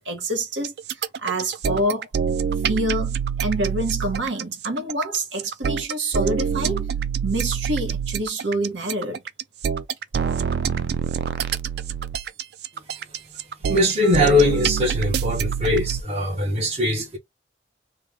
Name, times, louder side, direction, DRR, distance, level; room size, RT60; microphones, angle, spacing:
voice 1, 0.0-2.1 2.7-6.9 7.2-9.2, right 1 dB, 85° right, 1.0 m, -27 dB
sound 1, 0.6-16.0, right 7 dB, 60° right, 0.3 m, -25 dB
voice 2, 13.7-17.2, left 1 dB, 35° right, 1.1 m, -21 dB
3.1 x 2.3 x 3.5 m
head